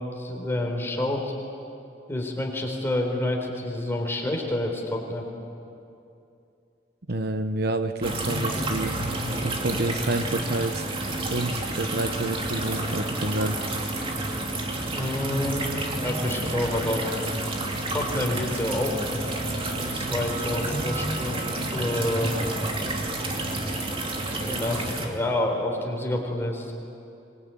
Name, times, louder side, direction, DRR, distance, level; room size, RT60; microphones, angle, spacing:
voice 1, 0.0-1.3 2.1-5.3 14.9-15.7 16.0-17.1 17.9-19.0 19.8-21.4 21.7-22.4 24.3-26.7, left 1 dB, 15° left, 0 dB, 4.2 m, -28 dB
voice 2, 7.1-9.0 9.4-10.9 11.3-13.6, right 2 dB, 60° right, 8 dB, 1.1 m, -28 dB
sound 1, 8.0-25.1, right 2 dB, 30° right, 2.7 m, -29 dB
25.0 x 22.0 x 9.2 m, 2.6 s
head